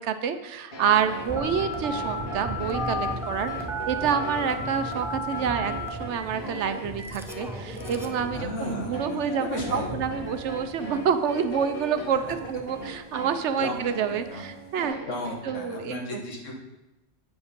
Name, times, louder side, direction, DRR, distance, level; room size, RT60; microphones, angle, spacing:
voice 1, 0.0-3.5 3.9-15.0 15.4-16.2, right 7 dB, 70° right, 9 dB, 0.9 m, -28 dB
sound 1, 0.7-15.6, right 1 dB, 50° left, 1.8 m, -39 dB
Thunder / Rain, 0.9-14.9, right 1 dB, 35° left, 2.2 m, -40 dB
Telephone, 1.4-8.2, left 1 dB, 5° right, 0.4 m, -34 dB
voice 2, 8.3-10.0 13.6-13.7 14.1-14.4 15.1-16.5, left 2 dB, 90° left, 0 dB, 1.8 m, -34 dB
9.1 x 5.0 x 5.2 m, 1.0 s
omnidirectional pair, 1.3 m